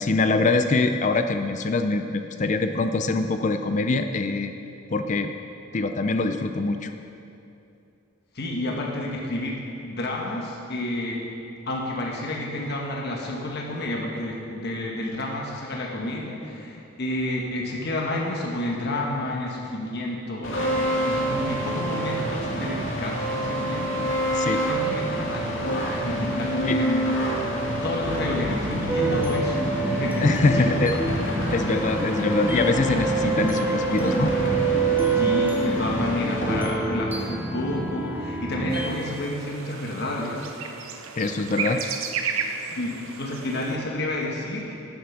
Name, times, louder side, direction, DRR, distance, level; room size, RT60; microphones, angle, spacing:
voice 1, 0.0-4.5 4.9-5.3 5.7-6.9 24.3-24.6 26.6-26.8 30.2-30.9 31.5-34.3 41.2-41.8, left 3 dB, 35° left, 8 dB, 0.4 m, -23 dB
voice 2, 8.3-9.6 9.8-11.2 11.7-27.1 27.8-31.0 31.5-31.7 35.1-40.5 42.6-44.7, left 1 dB, 55° left, -1 dB, 1.1 m, -30 dB
sound 1, 20.4-36.6, equal, 70° left, 2.0 m, -27 dB
sound 2, 28.9-38.9, right 4 dB, 10° right, 0.7 m, -27 dB
sound 3, 38.7-43.8, right 6 dB, 90° right, 0.8 m, -33 dB
10.5 x 7.7 x 5.8 m, 2.7 s
head